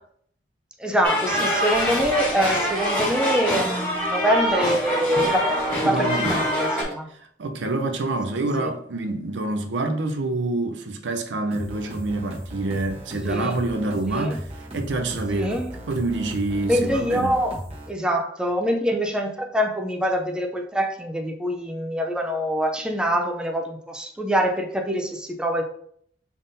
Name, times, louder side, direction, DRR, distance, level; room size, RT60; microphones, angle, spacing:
voice 1, 0.8-5.5 5.8-7.1 8.6-8.7 13.3-13.5 14.1-14.4 15.3-15.7 16.6-17.6 17.9-25.6, equal, 5° right, 0.4 m, -25 dB
sound 1, 1.0-6.8, equal, 10° left, 1.7 m, -24 dB
voice 2, 5.8-6.4 7.4-14.5 14.7-15.6 15.9-17.4, right 2 dB, 75° right, 0.6 m, -27 dB
sound 2, 11.5-17.9, equal, 35° right, 0.9 m, -36 dB
5.5 x 3.6 x 2.6 m
head